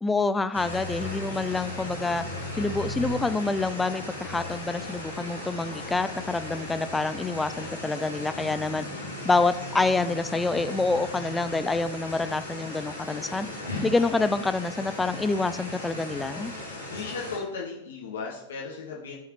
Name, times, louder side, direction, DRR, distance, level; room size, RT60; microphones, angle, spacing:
voice 1, 0.0-2.2 2.6-8.9 9.2-13.5 13.8-16.5, left 3 dB, 10° left, 12 dB, 0.5 m, -27 dB
Seamless Rain Medium, 0.5-17.4, left 1 dB, 90° left, 2.4 m, -37 dB
voice 2, 16.9-19.1, left 5 dB, 65° left, -3 dB, 1.6 m, -36 dB
13.5 x 5.7 x 3.1 m, 0.86 s
figure-of-eight pair, 90°, 0 cm